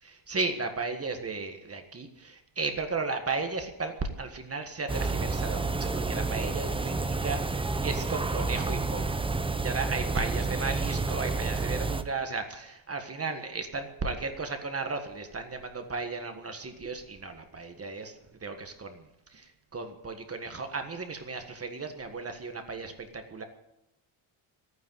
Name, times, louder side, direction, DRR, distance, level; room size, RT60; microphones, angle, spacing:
voice 1, 0.0-9.2 9.6-19.0 19.3-23.4, right 4 dB, 30° right, 6 dB, 1.6 m, -35 dB
sound 1, 4.9-12.0, right 3 dB, 10° right, 0.7 m, -30 dB
13.0 x 9.6 x 9.3 m, 0.87 s
cardioid pair, 125°, 50 cm